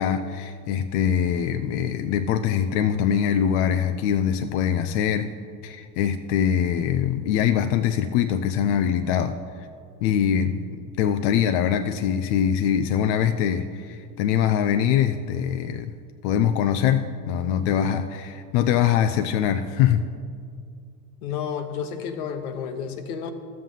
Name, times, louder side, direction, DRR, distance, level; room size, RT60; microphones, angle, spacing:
voice 1, 0.0-5.3 5.6-9.7 10.0-15.9 16.2-20.1, left 9 dB, 50° left, 8 dB, 0.5 m, -23 dB
voice 2, 21.2-23.3, left 7 dB, 65° left, 8 dB, 1.1 m, -31 dB
13.5 x 7.5 x 3.8 m, 2.2 s
hypercardioid pair, 95°, 48 cm